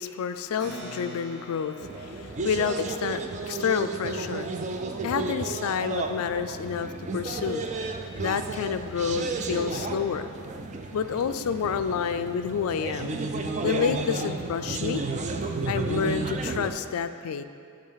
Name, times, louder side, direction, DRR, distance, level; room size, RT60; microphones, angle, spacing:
voice 1, 0.0-4.5 5.0-7.7 8.2-10.3 10.9-13.2 13.6-15.0 15.7-17.4, left 7 dB, 70° left, 11 dB, 0.3 m, -29 dB
Keyboard (musical), 0.6-6.6, right 1 dB, 50° right, 1.6 m, -47 dB
sound 1, 1.8-16.7, right 3 dB, 35° right, 0.4 m, -32 dB
10.5 x 3.7 x 3.9 m, 2.4 s
head